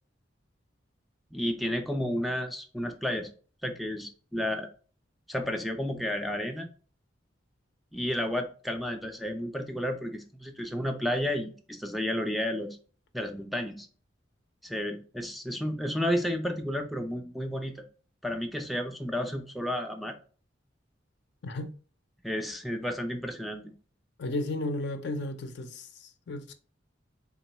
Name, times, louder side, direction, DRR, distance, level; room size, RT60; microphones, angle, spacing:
voice 1, 1.3-3.3 3.6-4.7 5.3-6.7 7.9-12.8 13.1-13.9 14.6-17.8 18.2-20.2 22.2-23.7, equal, ahead, 0.3 m, -32 dB
voice 2, 21.4-21.8 24.2-26.5, left 1 dB, 65° left, 0.5 m, -34 dB
3.8 x 2.9 x 2.9 m
head